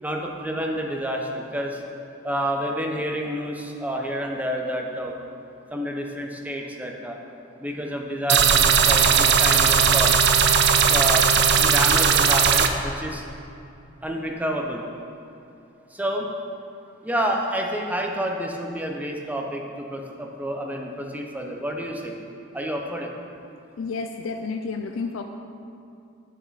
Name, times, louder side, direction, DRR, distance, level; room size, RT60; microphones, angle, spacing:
voice 1, 0.0-1.8 2.2-5.2 5.7-7.2 7.6-10.1 10.9-11.3 11.6-13.2 14.0-14.8 15.9-16.3 17.0-22.2 22.5-23.1, equal, 10° right, 1 dB, 0.8 m, -29 dB
sound 1, 8.3-12.7, right 6 dB, 60° right, 0.5 m, -18 dB
voice 2, 23.8-25.2, left 4 dB, 70° left, 5 dB, 0.4 m, -30 dB
9.2 x 8.6 x 4.1 m, 2.6 s
head